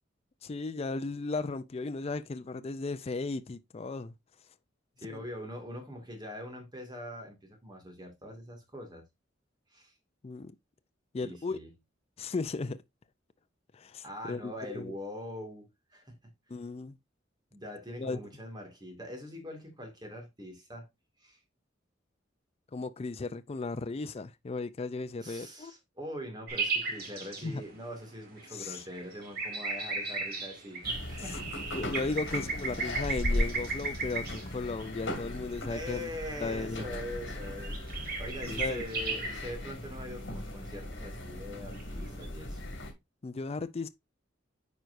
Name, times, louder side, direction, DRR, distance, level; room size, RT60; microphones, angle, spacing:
voice 1, 0.4-4.1 5.1-5.2 10.2-10.5 11.1-11.6 12.2-12.8 13.7-14.9 16.5-17.0 18.0-18.2 22.7-25.7 27.4-27.6 28.5-28.8 31.2-31.4 31.7-36.1 36.4-36.9 38.4-38.9 43.2-43.9, left 3 dB, 35° left, 0.4 m, -36 dB
voice 2, 5.0-9.0 9.7-9.9 11.2-11.7 14.0-16.3 17.5-20.9 21.2-21.4 25.2-31.8 35.7-37.9 38.2-42.6, equal, 25° right, 2.1 m, -43 dB
sound 1, 26.5-42.3, right 4 dB, 55° right, 2.1 m, -37 dB
sound 2, 30.8-42.9, left 1 dB, 75° left, 2.1 m, -38 dB
9.4 x 4.6 x 2.6 m
head